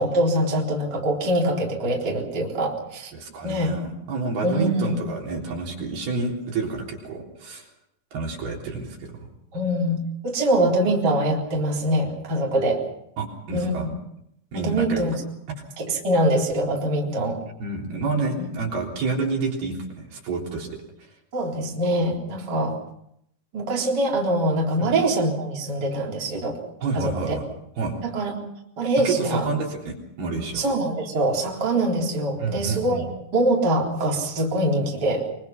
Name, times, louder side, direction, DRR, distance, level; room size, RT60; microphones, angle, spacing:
voice 1, 0.0-3.1 3.4-3.7 4.4-5.0 9.5-12.8 13.5-13.7 14.5-15.1 15.8-17.4 18.4-18.5 21.3-22.8 23.5-26.6 26.9-27.4 28.0-28.3 28.8-29.5 30.5-33.1 33.3-35.3, right 1 dB, 25° right, -2 dB, 4.0 m, -23 dB
voice 2, 3.1-7.7 8.1-9.2 13.2-13.9 14.5-15.0 17.6-20.7 24.8-24.9 26.8-27.4 27.8-28.0 29.0-30.6 32.4-33.0, right 4 dB, 65° right, -1 dB, 5.5 m, -29 dB
24.5 x 23.5 x 5.8 m, 0.76 s
omnidirectional pair, 4.9 m